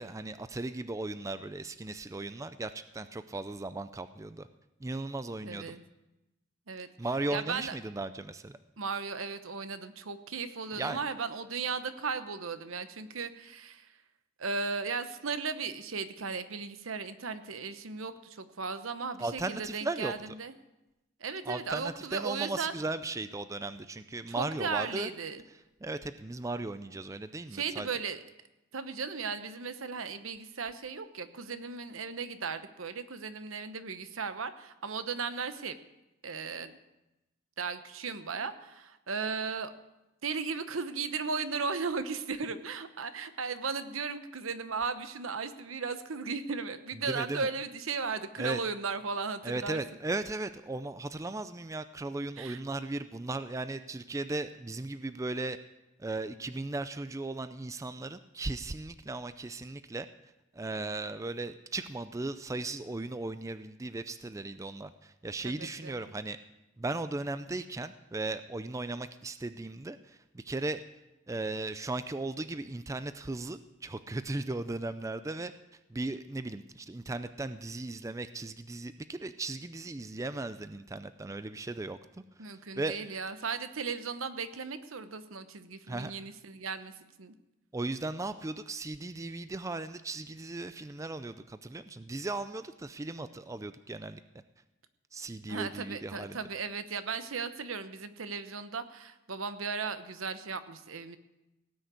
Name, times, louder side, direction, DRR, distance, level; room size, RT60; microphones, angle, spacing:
voice 1, 0.0-4.5 4.8-5.8 7.0-8.6 10.7-11.0 19.2-20.1 21.5-25.1 25.8-27.9 47.1-47.5 48.4-48.6 49.4-55.6 56.0-60.1 60.5-66.4 66.8-70.8 71.3-75.5 75.9-82.0 82.5-83.0 85.9-86.1 87.7-94.2 95.1-96.4, right 2 dB, 15° right, 12 dB, 0.4 m, -37 dB
voice 2, 5.4-5.8 6.7-6.9 7.3-7.8 8.8-13.9 14.4-20.5 21.2-22.7 24.4-25.4 27.5-28.2 28.7-35.8 36.2-36.7 37.6-39.7 40.2-49.8 52.4-52.6 65.4-66.1 82.4-87.3 95.5-101.2, right 5 dB, 80° right, 11 dB, 0.9 m, -36 dB
17.5 x 6.4 x 8.3 m, 0.96 s
head